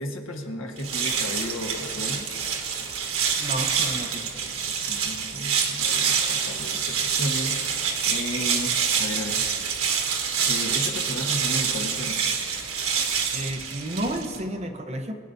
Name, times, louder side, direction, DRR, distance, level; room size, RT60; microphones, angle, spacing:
voice 1, 0.0-2.2 4.8-7.6 8.1-9.4 10.5-12.2, left 1 dB, 70° left, 2 dB, 1.3 m, -33 dB
sound 1, 0.8-14.4, right 6 dB, 85° right, 1.3 m, -26 dB
voice 2, 3.4-4.8 13.3-15.1, right 1 dB, 30° right, 6 dB, 0.7 m, -32 dB
21.0 x 9.7 x 2.6 m, 2.2 s
head